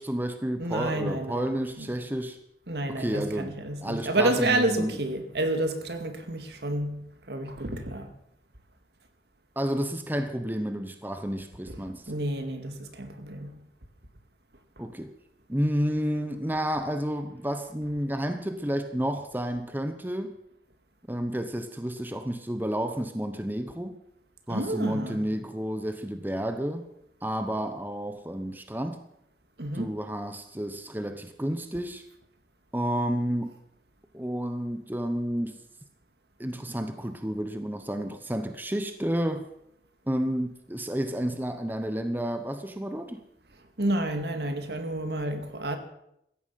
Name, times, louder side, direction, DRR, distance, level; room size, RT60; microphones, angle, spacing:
voice 1, 0.0-2.4 2.9-3.5 3.8-5.0 9.6-12.1 14.8-15.1 15.5-20.4 21.1-24.0 24.5-26.8 27.2-29.0 29.7-32.0 32.7-33.5 34.1-35.6 36.4-39.5 40.1-43.2, equal, 10° right, 0.9 m, -30 dB
voice 2, 0.6-1.9 2.7-8.1 11.7-11.8 12.1-13.6 24.5-25.2 29.6-29.9 43.8-45.8, right 1 dB, 65° right, 2.1 m, -30 dB
16.5 x 14.0 x 5.8 m
head